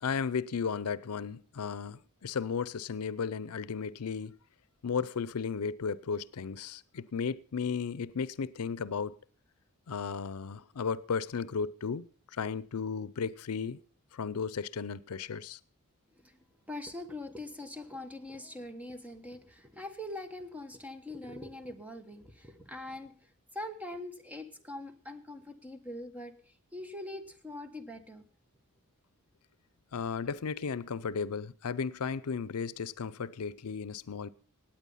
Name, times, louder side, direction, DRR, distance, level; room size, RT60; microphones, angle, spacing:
voice 1, 0.0-4.4 4.8-9.2 9.9-13.8 14.1-15.6 29.9-34.3, left 6 dB, 85° left, 0.6 m, -34 dB
voice 2, 16.7-28.3, left 1 dB, 5° right, 1.3 m, -43 dB
17.5 x 9.0 x 5.6 m
head